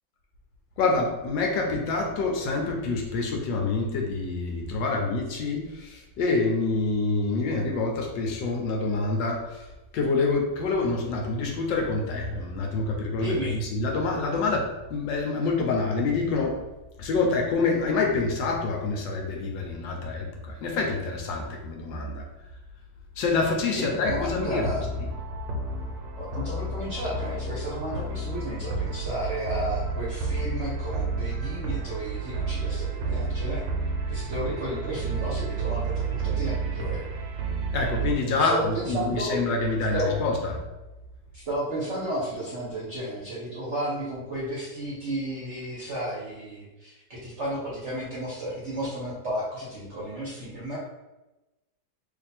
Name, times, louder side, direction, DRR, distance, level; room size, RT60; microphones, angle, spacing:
voice 1, 0.8-9.7 9.9-16.6 17.0-22.3 23.2-24.7 37.5-40.6, left 3 dB, 75° left, 1 dB, 1.3 m, -27 dB
voice 2, 13.2-13.6 23.7-24.8 26.2-33.6 34.1-37.2 38.4-39.4 39.9-40.1 41.3-50.8, right 1 dB, 50° right, -7 dB, 0.8 m, -33 dB
sound 1, 24.1-38.1, right 3 dB, 75° right, 1.2 m, -31 dB
3.1 x 2.6 x 4.1 m, 1.0 s
omnidirectional pair, 2.2 m